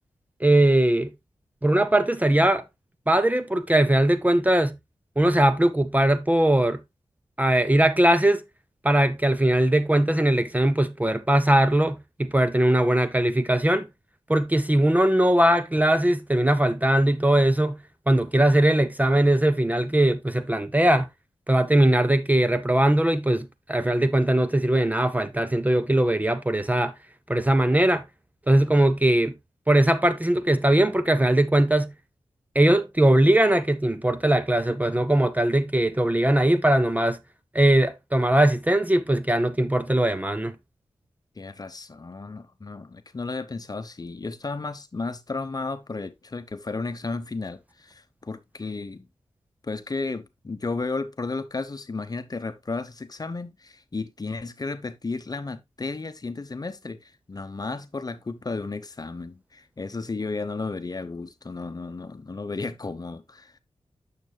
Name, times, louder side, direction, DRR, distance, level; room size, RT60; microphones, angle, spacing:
voice 1, 0.4-1.1 1.6-2.6 3.1-4.8 5.2-6.8 7.4-8.4 8.8-13.9 14.3-17.8 18.1-21.1 21.5-26.9 27.3-28.0 28.5-29.4 29.7-31.9 32.5-37.2 37.5-40.6, right 1 dB, 15° right, 0.6 m, -20 dB
voice 2, 41.4-49.1 49.6-63.5, left 3 dB, 40° left, 0.8 m, -33 dB
8.9 x 6.7 x 2.2 m
wide cardioid pair, 70°, 10 cm